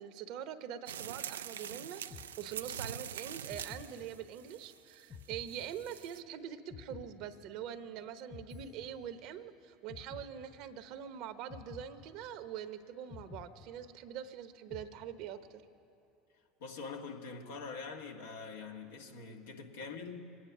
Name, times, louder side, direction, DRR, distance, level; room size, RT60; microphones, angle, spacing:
voice 1, 0.0-15.6, right 9 dB, 60° right, 0.9 m, -44 dB
sound 1, 0.9-6.2, right 9 dB, 85° right, 0.4 m, -44 dB
sound 2, 2.1-3.0 3.5-4.6 5.1-6.3 6.7-7.9 8.3-9.5 9.9-11.0 11.5-12.7 13.1-14.3 14.7-15.6, left 7 dB, 35° left, 0.6 m, -52 dB
voice 2, 16.6-20.2, left 4 dB, 80° left, 1.6 m, -44 dB
25.0 x 9.6 x 6.1 m
hypercardioid pair, 80°, 0 cm